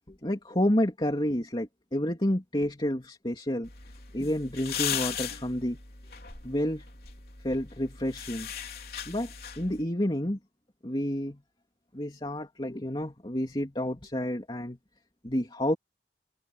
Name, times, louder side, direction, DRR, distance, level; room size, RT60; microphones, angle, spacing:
voice 1, 0.1-3.7 4.1-5.8 6.4-6.8 7.4-8.5 9.1-10.4 10.8-11.4 11.9-14.8 15.2-15.8, left 1 dB, 25° left, 2.8 m, -29 dB
sound 1, 3.6-9.8, left 9 dB, 55° left, 3.9 m, -38 dB
head